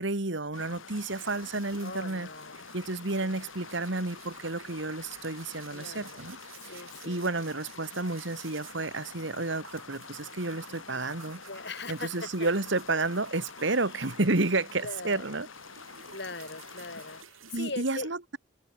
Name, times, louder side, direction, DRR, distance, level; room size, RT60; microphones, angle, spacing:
voice 1, 0.0-2.3 2.7-6.4 6.7-11.4 11.9-15.5 17.5-18.4, right 2 dB, 65° right, 1.8 m, -31 dB
sound 1, 0.5-17.2, left 5 dB, 75° left, 2.1 m, -47 dB
sound 2, 0.9-14.7 15.0-17.6, right 8 dB, 85° right, 6.9 m, -53 dB
voice 2, 1.8-2.7 3.2-3.5 5.7-6.2 6.7-7.3 11.5-12.5 13.6-14.1 14.8-15.3 16.1-18.1, left 3 dB, 55° left, 3.9 m, -41 dB
head